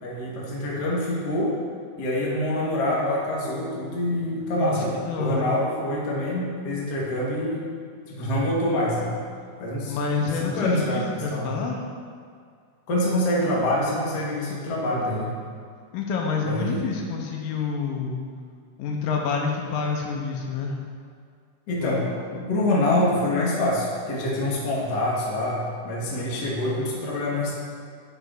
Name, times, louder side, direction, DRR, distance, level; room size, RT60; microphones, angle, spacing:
voice 1, 0.0-1.5 2.0-7.7 8.1-9.2 9.6-11.5 12.9-15.3 16.4-16.9 21.7-22.0 22.3-27.5, left 1 dB, 55° left, -5 dB, 1.1 m, -26 dB
voice 2, 4.6-5.5 9.9-11.8 15.9-18.2 18.8-20.8 21.8-22.1, left 5 dB, 80° left, 0 dB, 2.1 m, -28 dB
8.1 x 7.7 x 2.4 m, 2.2 s
omnidirectional pair, 3.8 m